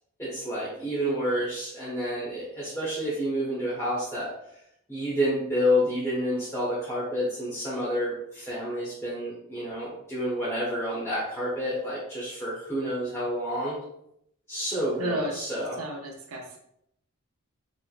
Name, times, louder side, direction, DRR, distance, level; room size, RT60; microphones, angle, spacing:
voice 1, 0.2-4.3 4.9-13.8 14.5-15.8, equal, 10° left, -8 dB, 0.8 m, -29 dB
voice 2, 15.0-15.3 15.8-16.6, right 1 dB, 65° right, 1 dB, 0.6 m, -32 dB
3.1 x 3.0 x 2.4 m, 0.75 s
head